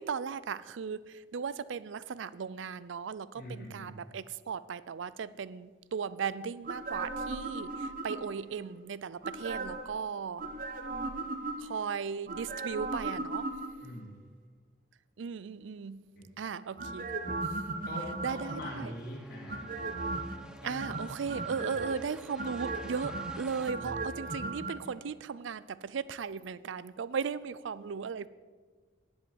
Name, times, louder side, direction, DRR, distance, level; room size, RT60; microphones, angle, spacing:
voice 1, 0.0-10.4 11.6-13.5 15.2-16.0 16.4-17.1 18.2-18.9 20.6-28.3, right 6 dB, 75° right, 17 dB, 0.4 m, -37 dB
voice 2, 3.3-3.9 13.8-14.1 16.2-16.3 17.8-19.6 20.6-20.9 21.3-21.4 23.7-23.9, left 1 dB, 50° left, -3 dB, 2.3 m, -43 dB
sound 1, 6.6-8.5 9.2-9.9 10.4-11.8 12.3-14.0 16.8-18.9 19.5-20.4 20.8-21.9 22.4-24.7 25.0-25.1, right 2 dB, 45° right, 1.0 m, -37 dB
sound 2, 18.5-23.7, equal, 5° right, 0.5 m, -50 dB
10.5 x 8.1 x 7.1 m, 1.4 s
head